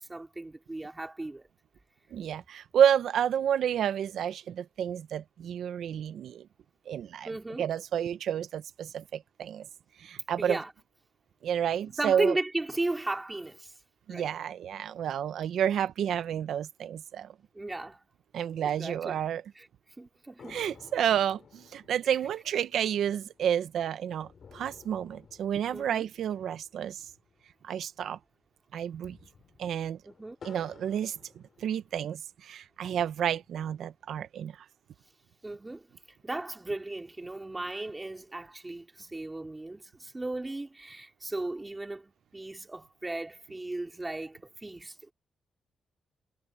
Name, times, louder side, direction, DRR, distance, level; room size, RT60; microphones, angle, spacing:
voice 1, 0.1-1.5 7.2-7.7 10.4-10.7 11.9-13.7 14.1-14.3 17.5-18.0 18.6-19.2 19.5-19.7 20.0-20.6 22.0-22.1 25.7-26.1 30.0-30.4 35.4-35.9 36.2-45.1, right 2 dB, 15° right, 3.2 m, -36 dB
voice 2, 2.1-6.5 6.9-7.3 7.6-9.7 10.0-10.6 11.4-12.4 14.1-17.3 18.3-19.4 20.5-27.0 27.6-28.2 28.7-29.2 29.6-30.0 30.4-31.1 31.6-34.5, right 9 dB, 70° right, 0.9 m, -30 dB
sound 1, 20.4-28.0 28.2-28.3 28.8-32.1 32.7-33.7, left 6 dB, 45° left, 6.3 m, -56 dB
wide cardioid pair, 155°, 0 cm